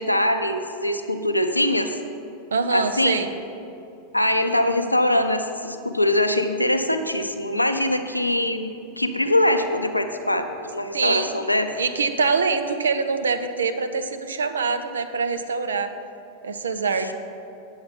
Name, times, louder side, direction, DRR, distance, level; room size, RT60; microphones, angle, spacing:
voice 1, 0.0-2.0 2.7-3.2 4.1-8.7 9.0-11.7 17.0-17.1, left 1 dB, 85° left, 7 dB, 0.5 m, -22 dB
voice 2, 2.5-3.3 10.9-11.3 11.8-15.9 16.4-17.1, right 4 dB, 70° right, 9 dB, 0.6 m, -24 dB
8.8 x 7.1 x 5.3 m, 2.7 s
figure-of-eight pair, 90°, 0 cm